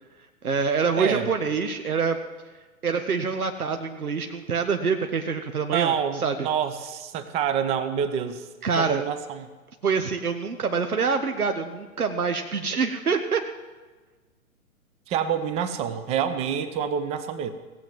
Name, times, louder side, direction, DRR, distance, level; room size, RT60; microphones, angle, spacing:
voice 1, 0.4-2.2 2.8-5.9 6.2-6.3 8.6-9.0 9.8-13.4, right 5 dB, 90° right, 6 dB, 1.1 m, -25 dB
voice 2, 1.0-1.3 5.7-8.5 8.7-9.5 15.1-17.5, right 8 dB, 15° right, 11 dB, 0.6 m, -27 dB
17.5 x 7.5 x 7.6 m, 1.3 s
figure-of-eight pair, 125°, 43 cm